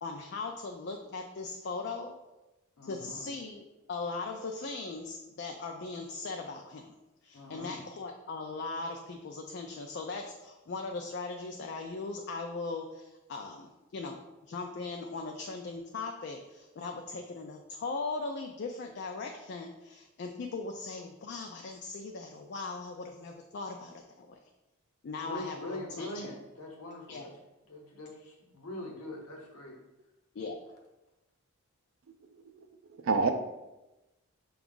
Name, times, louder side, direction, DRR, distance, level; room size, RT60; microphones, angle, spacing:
voice 1, 0.0-2.1 2.8-7.0 7.2-24.4 25.0-26.3 27.1-27.3 30.3-30.6, left 3 dB, 50° left, 3 dB, 0.3 m, -39 dB
voice 2, 2.8-3.3 7.3-7.8 25.2-27.3 27.7-29.8, left 1 dB, 85° left, 1 dB, 0.9 m, -42 dB
voice 3, 32.3-33.3, right 4 dB, 60° right, 7 dB, 0.4 m, -30 dB
6.0 x 2.3 x 3.7 m, 1.0 s
head